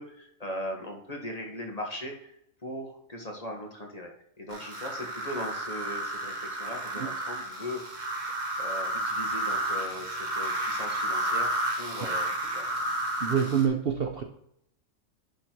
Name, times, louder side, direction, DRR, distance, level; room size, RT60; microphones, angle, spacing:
voice 1, 0.0-2.4 2.6-4.1 4.4-8.1 8.6-12.3 12.5-12.7, left 1 dB, 30° left, 1 dB, 1.6 m, -39 dB
sound 1, 4.5-13.7, right 1 dB, 35° right, 1.7 m, -31 dB
voice 2, 13.2-14.2, right 7 dB, 50° right, 4 dB, 0.9 m, -26 dB
10.5 x 4.2 x 4.6 m, 0.74 s
omnidirectional pair, 1.4 m